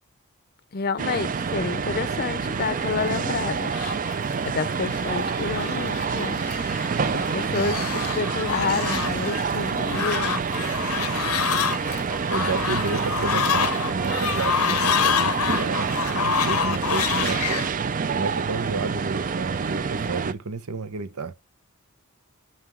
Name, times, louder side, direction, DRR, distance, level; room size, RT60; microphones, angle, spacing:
voice 1, 0.7-3.7 4.4-6.4 7.1-10.4, left 4 dB, 45° left, 0.5 m, -29 dB
sound 1, 1.0-20.3, right 5 dB, 35° right, 0.4 m, -27 dB
Fowl, 2.9-17.7, left 8 dB, 90° left, 0.8 m, -28 dB
voice 2, 7.5-8.0 12.3-17.5 18.1-21.3, right 4 dB, 90° right, 0.8 m, -31 dB
9.6 x 5.6 x 4.5 m
head